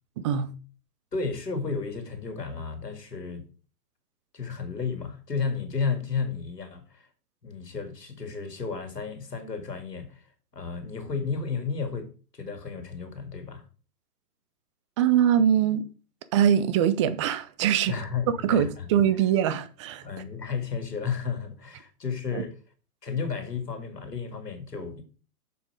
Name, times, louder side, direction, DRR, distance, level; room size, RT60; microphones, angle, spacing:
voice 1, 0.2-0.5 15.0-15.9 16.3-17.9 18.4-20.0 22.3-22.4, right 9 dB, 20° right, 0.5 m, -23 dB
voice 2, 1.1-3.5 4.3-7.1 7.4-10.2 10.5-13.7 17.9-18.9 20.0-22.5 23.0-25.0, left 5 dB, 90° left, 2.1 m, -33 dB
7.3 x 6.9 x 4.9 m
figure-of-eight pair, 120°, 47 cm